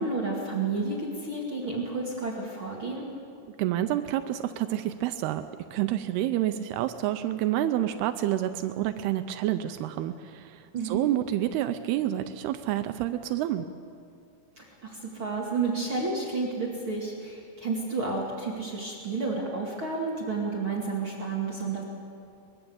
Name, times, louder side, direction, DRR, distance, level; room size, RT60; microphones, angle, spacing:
voice 1, 0.0-3.1 10.7-11.1 14.6-21.8, right 3 dB, 40° right, -3 dB, 2.6 m, -31 dB
voice 2, 3.6-5.4 5.7-13.7, right 13 dB, 85° right, 9 dB, 2.7 m, -28 dB
23.0 x 21.5 x 7.1 m, 2.5 s
omnidirectional pair, 4.5 m